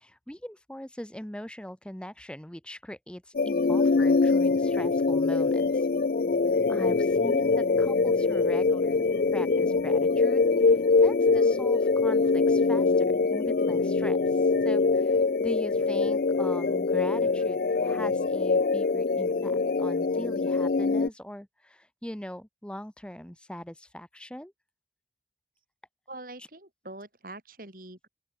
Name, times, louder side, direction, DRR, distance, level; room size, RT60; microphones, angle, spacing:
voice 1, 0.0-5.9 6.7-24.5 26.4-26.5, equal, 5° left, 0.7 m, -41 dB
sound 1, 3.3-21.1, left 4 dB, 55° left, 0.4 m, -24 dB
voice 2, 26.1-28.1, right 2 dB, 50° right, 4.6 m, -44 dB
open air
head